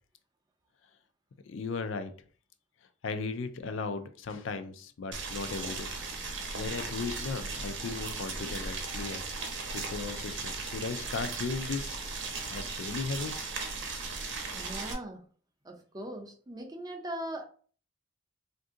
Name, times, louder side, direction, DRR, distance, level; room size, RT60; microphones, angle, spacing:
voice 1, 1.5-2.1 3.0-5.9 6.5-9.2 9.6-12.0 12.5-13.3, left 4 dB, 70° left, 0.4 m, -36 dB
Boiling, 5.1-14.9, right 4 dB, 60° right, 0.7 m, -37 dB
voice 2, 14.5-15.2 15.6-17.4, right 1 dB, 20° right, 0.5 m, -40 dB
2.6 x 2.6 x 3.6 m
head